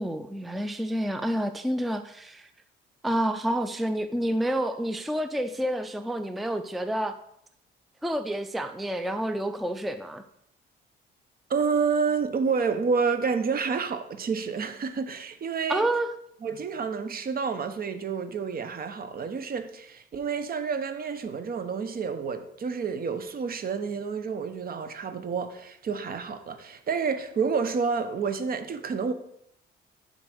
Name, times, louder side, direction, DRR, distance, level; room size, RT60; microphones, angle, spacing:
voice 1, 0.0-2.5 3.0-7.1 8.0-10.2 15.7-16.1, right 1 dB, ahead, 0.4 m, -29 dB
voice 2, 11.5-15.9 16.4-29.1, right 5 dB, 50° right, 0.9 m, -29 dB
7.5 x 4.0 x 6.4 m
cardioid pair, 90°, 20 cm